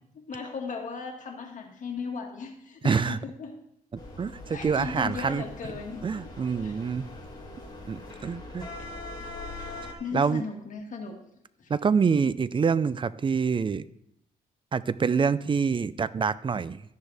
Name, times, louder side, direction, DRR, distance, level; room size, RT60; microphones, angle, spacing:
voice 1, 0.3-3.5 4.5-6.2 6.6-6.7 9.2-9.3 10.0-11.2 11.6-11.7, left 5 dB, 55° left, 2 dB, 2.0 m, -37 dB
voice 2, 2.8-3.2 3.9-5.4 6.0-7.1 7.9-8.7 10.1-10.4 11.7-13.8 14.7-16.8, right 5 dB, 35° right, 17 dB, 0.5 m, -26 dB
sound 1, 3.9-9.9, left 2 dB, 30° left, 3.7 m, -42 dB
13.0 x 10.0 x 3.5 m, 0.75 s
cardioid pair, 100°, 15 cm